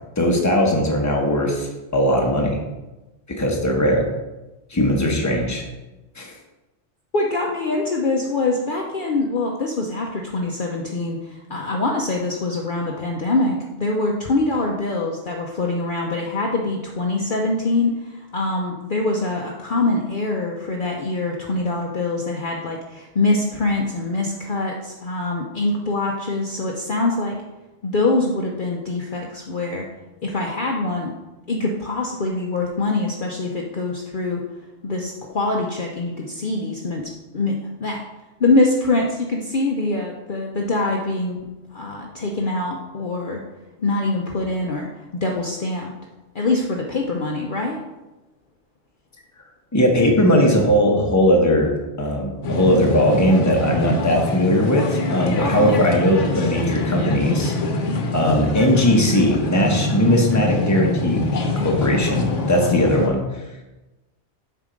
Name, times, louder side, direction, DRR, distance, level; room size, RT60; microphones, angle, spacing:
voice 1, 0.2-2.6 3.3-4.1 4.7-5.6 6.2-6.3 49.7-57.5 58.1-61.2 61.6-63.2, equal, 15° left, 0 dB, 1.0 m, -19 dB
voice 2, 7.1-27.4 27.8-29.9 30.2-31.1 31.5-34.4 34.8-37.5 37.8-38.0 38.4-41.5 41.7-43.4 43.8-44.9 45.2-45.9 46.3-47.8 55.4-55.9, left 2 dB, 50° left, 0 dB, 0.8 m, -24 dB
sound 1, 52.4-63.1, left 2 dB, 90° left, 1.3 m, -24 dB
7.3 x 4.6 x 5.1 m, 1.1 s
omnidirectional pair, 1.2 m